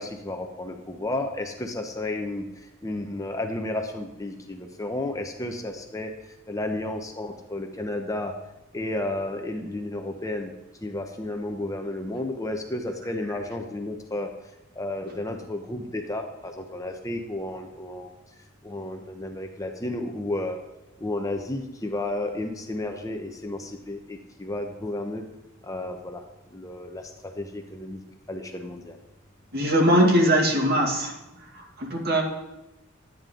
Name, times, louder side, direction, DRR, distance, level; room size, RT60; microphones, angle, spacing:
voice 1, 0.0-2.4 2.8-6.1 6.5-8.3 8.7-10.5 10.8-14.3 14.8-18.1 18.6-20.6 21.0-25.2 25.6-26.2 26.5-28.0 28.3-29.0, left 1 dB, 15° left, 4 dB, 0.8 m, -32 dB
voice 2, 29.5-31.1 31.5-32.2, equal, 50° right, 0 dB, 2.2 m, -21 dB
12.0 x 9.3 x 3.8 m, 0.95 s
head